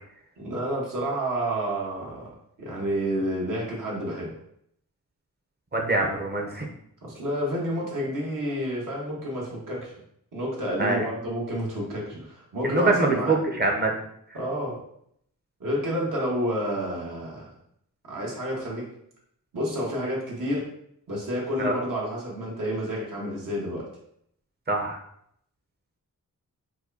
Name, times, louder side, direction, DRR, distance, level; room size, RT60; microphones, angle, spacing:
voice 1, 0.4-2.3 2.6-4.3 6.1-6.2 7.0-9.9 10.3-13.4 14.3-14.8 15.6-17.5 18.0-18.8 19.5-20.6 21.1-23.8, equal, 70° right, -4 dB, 1.4 m, -29 dB
voice 2, 5.7-6.7 10.8-11.0 12.6-13.9 21.6-21.8 24.7-25.0, right 2 dB, 30° right, 1 dB, 0.7 m, -24 dB
4.6 x 2.2 x 2.7 m, 0.71 s
cardioid pair, 80°, 33 cm